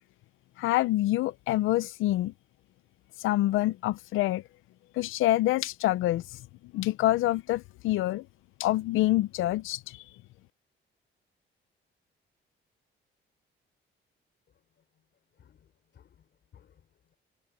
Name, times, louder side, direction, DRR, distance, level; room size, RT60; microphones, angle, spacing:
voice 1, 0.6-2.3 3.2-4.4 5.0-6.2 6.7-8.2 8.6-10.0, left 16 dB, 90° left, 0.7 m, -26 dB
voice 2, 15.4-17.2, left 9 dB, 60° left, 5.0 m, -60 dB
cardioid pair, 90°, 20 cm